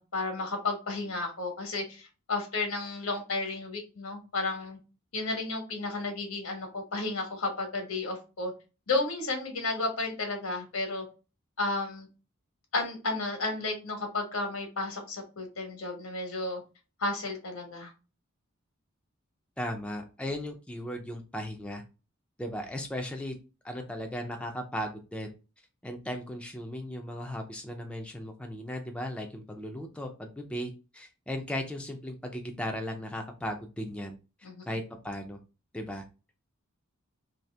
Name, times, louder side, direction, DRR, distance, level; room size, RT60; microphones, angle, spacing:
voice 1, 0.0-4.8 5.1-8.5 8.9-11.0 11.6-12.1 12.7-16.6 17.0-17.9 34.4-34.6, left 3 dB, 85° left, 3 dB, 1.1 m, -32 dB
voice 2, 19.6-21.8 22.4-23.4 23.6-25.3 25.8-34.2 34.7-35.4 35.7-36.0, equal, 5° left, 3 dB, 0.4 m, -36 dB
2.7 x 2.7 x 3.2 m, 0.31 s
head